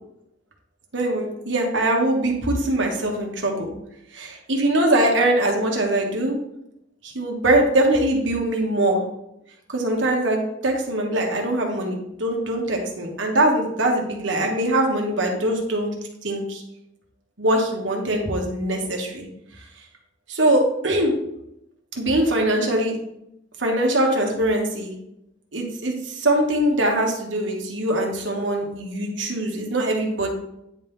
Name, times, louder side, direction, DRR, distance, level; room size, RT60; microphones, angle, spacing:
voice 1, 0.9-3.7 4.1-6.4 7.0-9.0 9.7-15.9 16.2-16.6 17.4-19.3 20.3-21.2 21.9-22.9 23.6-24.9 25.5-30.3, right 1 dB, 75° right, 1 dB, 1.6 m, -22 dB
9.6 x 4.2 x 3.7 m, 0.81 s
head